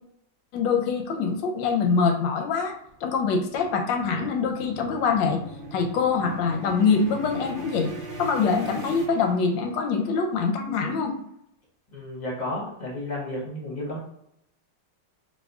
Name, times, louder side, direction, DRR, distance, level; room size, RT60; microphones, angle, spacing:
voice 1, 0.5-2.7 3.0-5.4 5.7-7.9 8.2-11.1, left 5 dB, 90° left, 4 dB, 1.3 m, -24 dB
sound 1, 2.7-9.9, equal, 60° right, 0.5 m, -39 dB
voice 2, 11.9-14.0, left 1 dB, 45° left, -3 dB, 0.5 m, -32 dB
3.6 x 2.1 x 3.5 m, 0.74 s
omnidirectional pair, 1.9 m